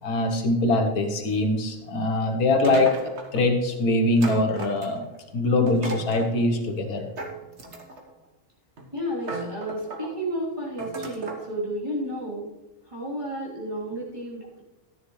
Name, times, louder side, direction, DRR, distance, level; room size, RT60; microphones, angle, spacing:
voice 1, 0.0-5.1 5.3-7.1, left 2 dB, 85° left, 5 dB, 1.6 m, -23 dB
sound 1, 2.6-3.4 4.2-5.2 5.7-6.3 7.2-8.1 8.8-8.9 9.2-10.1 10.8-11.5, right 2 dB, 50° right, 1.6 m, -35 dB
voice 2, 8.9-12.5 12.8-14.6, equal, 20° right, -6 dB, 3.5 m, -32 dB
13.5 x 10.0 x 3.2 m, 1.0 s
omnidirectional pair, 1.5 m